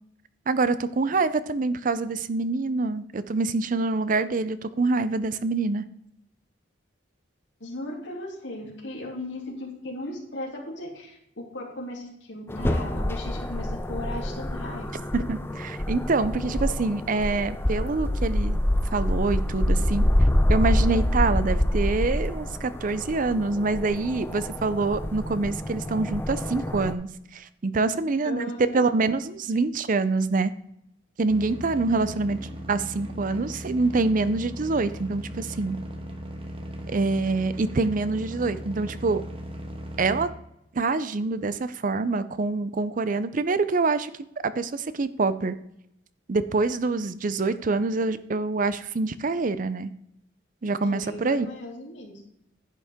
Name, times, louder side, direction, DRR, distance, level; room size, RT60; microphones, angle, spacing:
voice 1, 0.5-5.8 15.1-18.6 18.9-20.0 20.5-28.5 28.7-30.5 31.2-32.4 32.7-35.8 36.9-39.2 40.0-40.3 40.7-44.1 44.4-45.6 46.3-49.9 50.6-51.5, right 3 dB, 45° right, 14 dB, 0.5 m, -25 dB
voice 2, 7.6-14.9 28.2-29.0 50.8-52.2, left 1 dB, 75° left, -1 dB, 2.9 m, -37 dB
sound 1, 12.5-26.9, left 1 dB, 10° left, 0.5 m, -26 dB
sound 2, 31.3-40.3, equal, 30° right, 1.3 m, -38 dB
10.5 x 8.4 x 3.6 m, 0.78 s
head